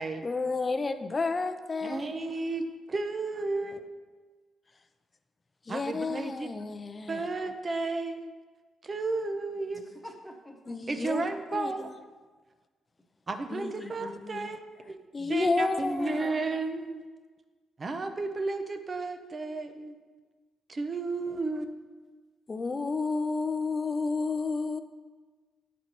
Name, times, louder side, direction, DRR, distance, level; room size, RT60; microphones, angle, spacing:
voice 1, 0.2-2.3 5.7-7.3 10.7-11.2 11.5-11.7 13.5-14.5 15.1-16.3 22.5-24.8, left 4 dB, 30° left, 10 dB, 0.4 m, -31 dB
voice 2, 1.8-3.8 5.7-6.5 7.1-8.3 8.8-9.8 10.9-11.9 13.3-14.6 14.9-17.1 17.8-20.0 20.7-21.7, right 3 dB, 35° right, 8 dB, 0.6 m, -33 dB
voice 3, 10.0-10.8 13.8-13.9, equal, 10° left, 1 dB, 1.0 m, -46 dB
9.2 x 4.1 x 3.0 m, 1.4 s
cardioid pair, 80°, 0 cm